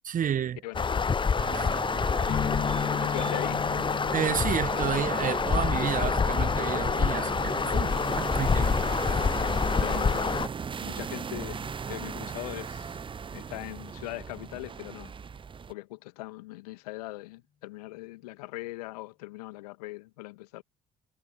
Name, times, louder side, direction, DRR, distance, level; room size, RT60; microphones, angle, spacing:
voice 1, 0.0-0.6 1.5-1.7 4.1-8.7, right 9 dB, 40° right, 1.4 m, -31 dB
voice 2, 0.6-1.1 3.0-3.7 9.0-9.4 9.8-10.4 10.8-13.0 13.3-15.1 15.7-20.6, left 20 dB, 75° left, 2.0 m, -41 dB
sound 1, 0.7-10.5, left 5 dB, 25° left, 0.9 m, -27 dB
sound 2, 1.3-15.7, right 6 dB, 25° right, 0.7 m, -37 dB
sound 3, 2.3-9.9, left 8 dB, 40° left, 2.3 m, -38 dB
figure-of-eight pair, 50°, 20 cm